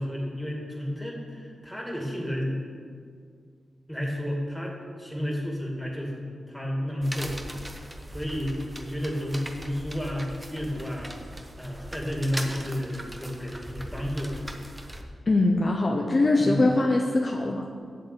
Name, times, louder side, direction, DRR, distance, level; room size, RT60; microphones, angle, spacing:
voice 1, 0.0-2.5 3.9-7.4 8.1-11.1 11.6-14.4 16.4-16.6, equal, ahead, -1 dB, 2.4 m, -31 dB
sound 1, 7.0-15.0, right 1 dB, 15° right, 1.0 m, -40 dB
voice 2, 15.3-17.7, left 2 dB, 35° left, 1 dB, 0.8 m, -22 dB
7.9 x 7.6 x 8.4 m, 2.1 s
wide cardioid pair, 95°, 0 cm